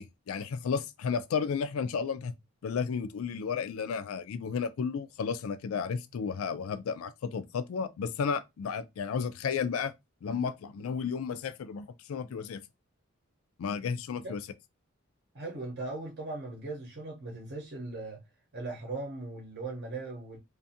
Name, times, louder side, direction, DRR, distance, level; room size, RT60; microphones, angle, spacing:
voice 1, 0.0-2.3 2.6-9.9 10.2-12.6 13.6-14.4, left 6 dB, 80° left, 0.4 m, -33 dB
voice 2, 15.3-18.2 18.5-20.4, right 2 dB, 55° right, 0.8 m, -39 dB
2.5 x 2.4 x 2.6 m
head